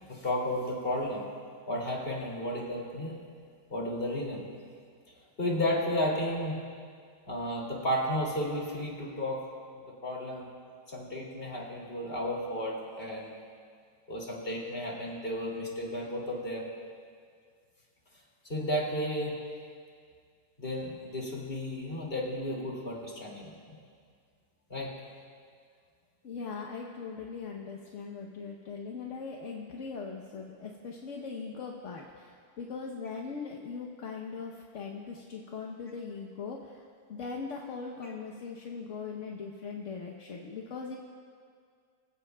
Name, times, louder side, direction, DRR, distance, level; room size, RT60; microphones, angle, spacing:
voice 1, 0.1-1.3 1.7-3.1 3.7-4.5 5.4-6.6 7.3-9.4 10.0-10.5 10.9-13.4 14.1-16.6 18.5-19.4 20.6-23.8 24.7-24.9, equal, 30° left, -2 dB, 2.7 m, -33 dB
voice 2, 26.2-41.0, left 5 dB, 50° left, 0 dB, 1.1 m, -40 dB
24.5 x 15.5 x 2.3 m, 2.1 s
omnidirectional pair, 1.9 m